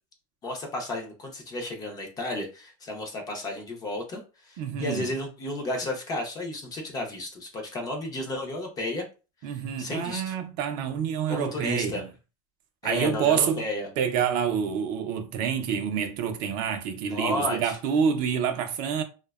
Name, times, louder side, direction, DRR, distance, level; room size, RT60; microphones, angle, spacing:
voice 1, 0.4-9.1 9.5-10.3 11.3-12.0 12.8-13.9 17.1-17.8, left 1 dB, 20° left, 0.5 m, -33 dB
voice 2, 4.6-5.1 9.4-12.1 12.8-13.6 14.0-19.0, right 7 dB, 40° right, 0.5 m, -27 dB
2.6 x 2.1 x 2.3 m
supercardioid pair, 150°, 20 cm